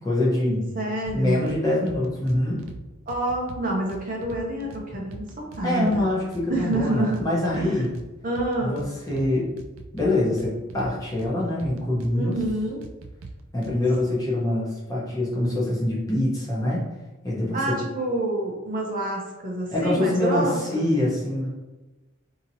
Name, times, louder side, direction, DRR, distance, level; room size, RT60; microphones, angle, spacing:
voice 1, 0.0-0.6 1.1-2.6 5.6-7.9 8.6-9.5 9.9-12.4 13.5-16.9 17.2-17.8 19.7-21.5, left 1 dB, 15° left, -6 dB, 0.8 m, -24 dB
voice 2, 0.7-1.4 3.1-5.2 5.5-6.1 6.5-7.2 7.5-7.8 8.2-8.8 12.1-12.8 17.5-20.9, right 1 dB, 40° right, -2 dB, 0.6 m, -27 dB
sound 1, 1.1-1.6 1.9-2.8 3.1-4.8 5.1-6.0 6.3-8.1 8.3-9.3 9.6-11.3 11.6-12.5 12.8-14.0, right 3 dB, 85° right, 0.4 m, -41 dB
2.8 x 2.8 x 2.6 m, 1.1 s
head